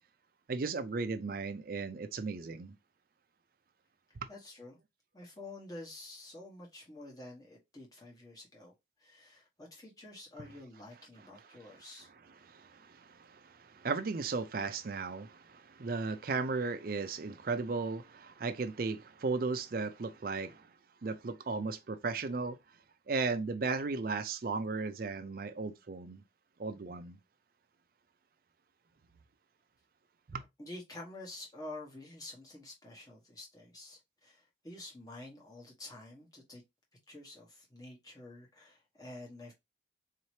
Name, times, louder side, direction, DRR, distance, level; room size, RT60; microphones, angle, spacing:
voice 1, 0.5-2.7 4.2-4.3 12.4-20.7 21.0-22.6 23.1-26.2 26.6-27.2 30.3-30.4, right 4 dB, 50° right, 0.4 m, -36 dB
voice 2, 4.3-4.8 5.1-8.7 9.0-12.1 30.6-36.6 37.1-39.5, left 2 dB, 20° left, 1.1 m, -49 dB
4.1 x 2.8 x 3.1 m
head